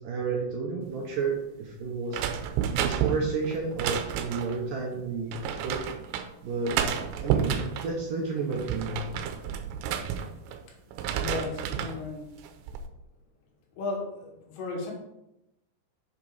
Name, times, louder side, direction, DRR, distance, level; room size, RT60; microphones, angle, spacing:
voice 1, 0.0-2.4 2.7-5.8 6.4-6.8 7.2-9.0, right 4 dB, 70° right, -1 dB, 2.2 m, -31 dB
sound 1, 2.1-4.6 5.3-6.3 6.7-7.9 8.4-10.6 10.9-12.0 12.4-12.9, right 8 dB, 90° right, 3.0 m, -31 dB
voice 2, 11.2-12.4 13.8-14.9, left 3 dB, 80° left, 0 dB, 3.9 m, -35 dB
7.4 x 6.8 x 4.9 m, 0.88 s
omnidirectional pair, 5.0 m